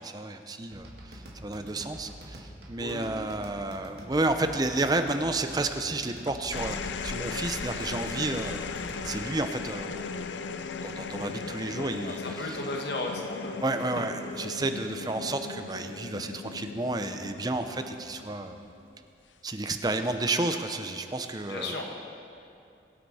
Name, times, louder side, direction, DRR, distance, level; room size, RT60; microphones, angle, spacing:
voice 1, 0.0-8.7 9.0-10.2 10.8-12.6 13.6-18.6 19.4-21.8, right 2 dB, 20° right, 7 dB, 0.6 m, -31 dB
sound 1, 0.7-9.4, equal, 65° right, 2.0 m, -46 dB
sound 2, 6.3-18.9 20.1-20.5, left 5 dB, 90° left, 0.5 m, -37 dB
voice 2, 12.0-13.6 21.5-21.9, left 2 dB, 75° left, 1 dB, 1.5 m, -35 dB
22.5 x 8.2 x 4.2 m, 2.5 s
head